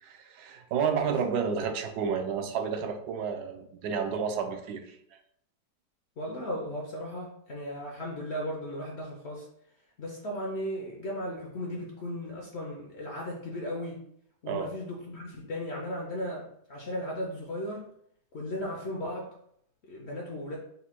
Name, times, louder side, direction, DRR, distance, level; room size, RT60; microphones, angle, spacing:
voice 1, 0.0-4.9 14.5-14.7, right 6 dB, 75° right, 6 dB, 1.1 m, -31 dB
voice 2, 6.2-9.5 10.0-14.0 14.4-17.9 18.3-19.3 19.8-20.6, equal, 65° left, -1 dB, 0.6 m, -36 dB
4.1 x 2.2 x 4.2 m, 0.70 s
omnidirectional pair, 1.8 m